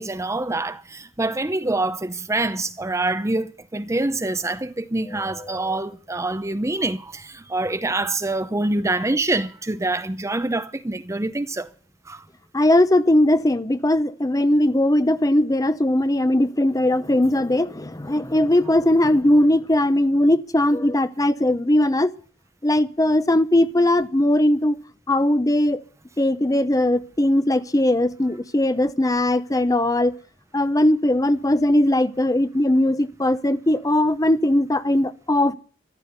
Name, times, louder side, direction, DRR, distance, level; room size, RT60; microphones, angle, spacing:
voice 1, 0.0-11.7 12.1-12.2, right 2 dB, 15° right, 0.7 m, -25 dB
voice 2, 12.5-22.1 22.6-24.8 25.1-25.8 26.2-30.1 30.5-35.5, left 1 dB, 20° left, 0.8 m, -19 dB
14.0 x 13.0 x 6.8 m
head